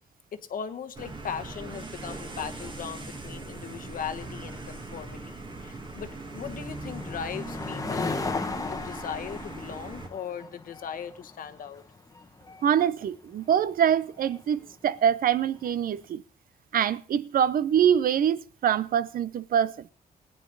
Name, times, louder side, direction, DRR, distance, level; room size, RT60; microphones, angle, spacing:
voice 1, 0.3-11.8, left 7 dB, 60° left, 1.1 m, -38 dB
sound 1, 0.9-10.1, right 2 dB, 30° right, 2.0 m, -40 dB
sound 2, 2.3-15.8, left 3 dB, 20° left, 1.0 m, -39 dB
voice 2, 12.6-16.2 16.7-19.8, right 9 dB, 65° right, 0.7 m, -24 dB
18.5 x 9.6 x 4.0 m
cardioid pair, 135°, 16 cm